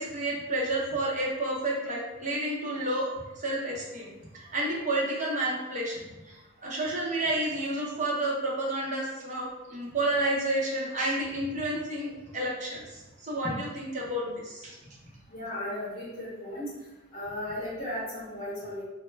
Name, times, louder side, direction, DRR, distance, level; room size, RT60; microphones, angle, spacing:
voice 1, 0.0-4.1 4.3-14.8, right 1 dB, 35° right, -4 dB, 0.7 m, -30 dB
voice 2, 15.3-16.7 17.1-18.8, left 1 dB, 40° left, -11 dB, 1.3 m, -35 dB
3.1 x 2.1 x 3.2 m, 1.1 s
head